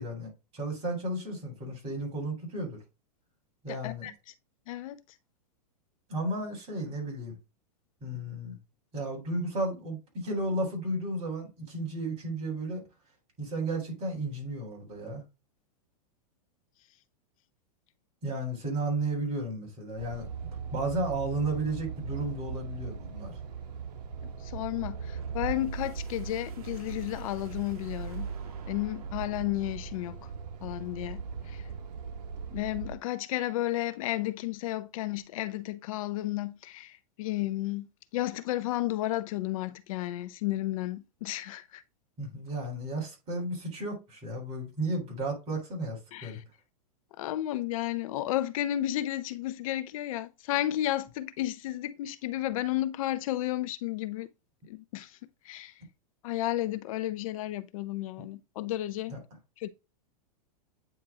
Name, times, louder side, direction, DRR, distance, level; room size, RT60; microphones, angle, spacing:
voice 1, 0.0-2.8 3.6-4.1 6.1-7.3 8.0-8.6 8.9-12.8 13.4-15.2 18.2-20.3 20.7-23.4 42.2-46.4 59.1-59.2, right 2 dB, 30° right, 3.3 m, -33 dB
voice 2, 3.7-4.1 4.7-5.0 24.4-28.3 28.7-30.3 30.6-31.7 32.5-37.9 38.1-41.8 46.1-46.4 47.2-54.3 54.7-55.2 55.4-55.7 56.2-59.1 59.6-59.7, left 14 dB, 60° left, 0.5 m, -32 dB
sound 1, 20.0-33.0, right 6 dB, 80° right, 0.9 m, -40 dB
sound 2, 25.0-30.1, right 6 dB, 65° right, 1.4 m, -43 dB
9.0 x 3.0 x 3.5 m
hypercardioid pair, 135°, 20 cm